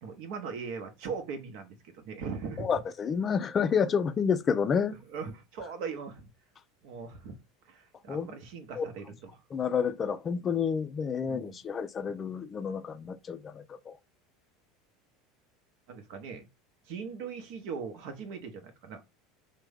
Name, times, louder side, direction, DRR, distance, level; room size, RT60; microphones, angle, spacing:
voice 1, 0.0-2.7 5.1-6.3 6.8-7.4 7.7-9.3 11.2-11.6 15.9-16.5 16.9-19.0, right 5 dB, 65° right, 0.8 m, -40 dB
voice 2, 2.6-5.0 8.1-8.4 8.8-8.9 9.5-14.0, left 6 dB, 35° left, 0.3 m, -29 dB
3.4 x 2.1 x 3.4 m
hypercardioid pair, 85°, 0 cm